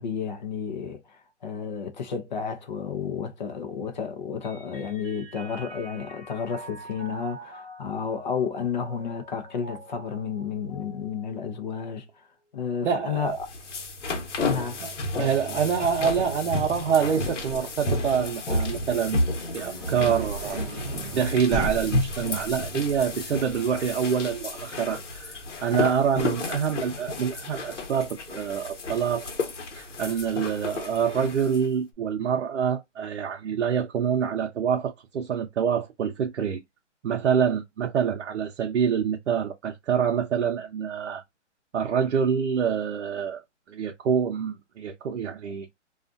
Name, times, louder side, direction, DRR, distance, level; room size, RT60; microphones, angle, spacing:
voice 1, 0.0-12.1 12.5-13.5 14.5-14.8, left 6 dB, 40° left, 0.6 m, -31 dB
Mallet percussion, 4.4-12.2, right 2 dB, 5° left, 1.1 m, -46 dB
voice 2, 12.8-13.4 14.8-19.3 19.5-20.6 21.1-29.2 29.7-36.6 37.0-41.2 41.7-43.4 43.7-45.7, right 7 dB, 70° right, 0.7 m, -26 dB
sound 1, 13.2-31.7, left 2 dB, 75° left, 1.1 m, -32 dB
sound 2, 18.6-28.4, right 3 dB, 15° right, 0.7 m, -37 dB
2.4 x 2.4 x 2.5 m
hypercardioid pair, 165°, 36 cm